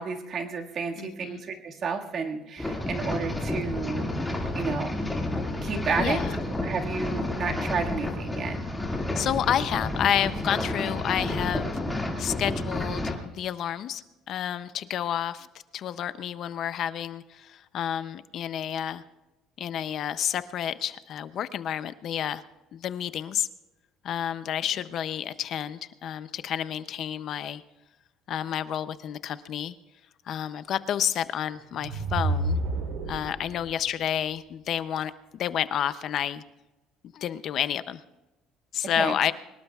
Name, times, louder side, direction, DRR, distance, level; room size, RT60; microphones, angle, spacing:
voice 1, 0.0-5.0 5.6-6.2 6.6-8.6 39.0-39.2, right 5 dB, 35° right, 2 dB, 1.8 m, -31 dB
voice 2, 1.0-1.4 6.0-6.4 9.1-15.5 15.7-19.0 19.6-22.4 22.7-23.5 24.0-27.6 28.3-29.7 30.3-32.6 33.1-36.4 37.1-38.0 38.7-39.3, left 10 dB, 40° left, 13 dB, 0.5 m, -30 dB
sound 1, 2.6-13.1, left 1 dB, 5° left, 2.1 m, -30 dB
sound 2, 31.6-33.6, right 2 dB, 60° right, 3.1 m, -29 dB
24.0 x 20.5 x 2.3 m, 1.1 s
cardioid pair, 175°, 0 cm